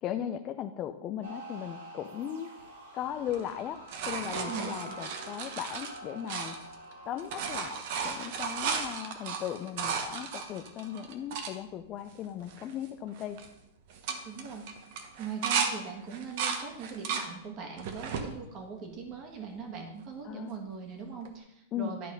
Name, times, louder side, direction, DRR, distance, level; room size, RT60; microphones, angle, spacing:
voice 1, 0.0-2.5 2.9-3.8 4.1-6.6 7.1-13.4 20.2-20.6 21.7-22.0, left 10 dB, 30° left, 7 dB, 0.4 m, -37 dB
sound 1, 1.2-7.4, right 2 dB, 75° right, 2.9 m, -45 dB
sound 2, 3.3-6.9 7.2-11.5 12.1-12.2 12.4-12.9 13.2-13.5 13.9-15.7 16.1-17.3 17.8-18.3 18.9-19.6 21.3-21.4, right 6 dB, 50° right, 1.1 m, -35 dB
voice 2, 4.4-4.8 14.2-14.6 15.2-22.1, right 5 dB, 30° right, 2 dB, 1.7 m, -41 dB
11.0 x 4.0 x 5.3 m, 0.85 s
supercardioid pair, 150°, 0 cm